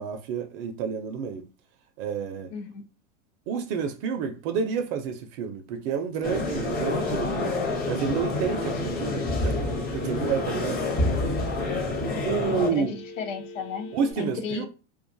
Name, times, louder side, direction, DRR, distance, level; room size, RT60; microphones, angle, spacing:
voice 1, 0.0-1.5 2.0-2.6 3.5-7.6 7.9-10.9 12.2-13.0 13.9-14.7, right 6 dB, 45° right, 0.5 m, -29 dB
voice 2, 2.5-2.8 12.5-13.9 14.2-14.7, left 5 dB, 75° left, 0.8 m, -34 dB
sound 1, 6.2-12.7, left 2 dB, 25° left, 0.7 m, -28 dB
Telephone, 8.1-14.1, left 1 dB, 40° left, 1.0 m, -42 dB
2.4 x 2.3 x 2.6 m
hypercardioid pair, 115°, 38 cm